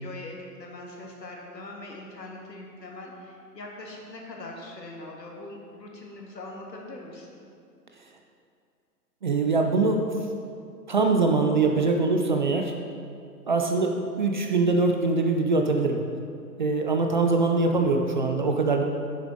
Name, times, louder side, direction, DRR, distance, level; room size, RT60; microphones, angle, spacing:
voice 1, 0.0-7.4 13.5-13.9, left 2 dB, 80° left, -1 dB, 1.9 m, -42 dB
voice 2, 9.2-10.0 10.9-12.7 13.5-16.0 16.6-18.8, right 3 dB, 30° right, 3 dB, 0.4 m, -23 dB
9.8 x 7.3 x 3.8 m, 2.4 s
figure-of-eight pair, 120°, 50 cm